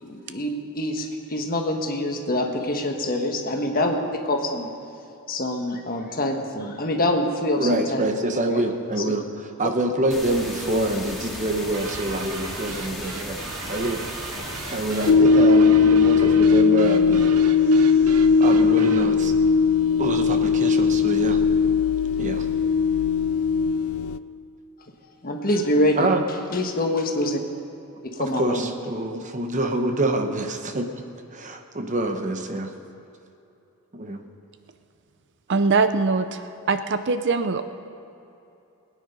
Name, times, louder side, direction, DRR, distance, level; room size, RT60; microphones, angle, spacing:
voice 1, 0.0-4.7 5.3-8.7 25.2-26.1 26.5-27.4 28.0-28.7, left 1 dB, 40° left, 3 dB, 1.4 m, -25 dB
voice 2, 7.6-13.4 13.7-14.0 14.7-17.3 17.6-18.0 18.4-19.3 20.0-21.4 22.2-22.5 25.9-26.2 28.4-30.9 31.3-32.7 33.9-34.2, right 2 dB, 35° right, 5 dB, 0.9 m, -26 dB
sound 1, 10.1-15.1, left 1 dB, ahead, 2.1 m, -35 dB
sound 2, 11.7-19.2, right 5 dB, 90° right, 0.9 m, -38 dB
sound 3, 15.1-24.2, left 5 dB, 65° left, 0.4 m, -18 dB
voice 3, 35.5-37.6, right 4 dB, 50° right, 10 dB, 0.5 m, -22 dB
21.0 x 9.4 x 5.3 m, 2.8 s
head